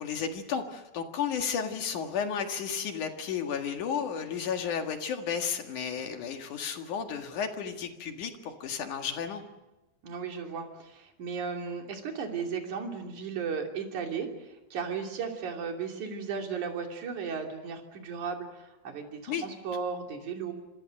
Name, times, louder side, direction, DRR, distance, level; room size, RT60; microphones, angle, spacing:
voice 1, 0.0-9.4 19.3-19.5, left 7 dB, 60° left, 5 dB, 3.0 m, -33 dB
voice 2, 10.0-20.5, right 6 dB, 55° right, 2 dB, 4.2 m, -35 dB
27.0 x 26.0 x 6.5 m, 1.0 s
omnidirectional pair, 4.3 m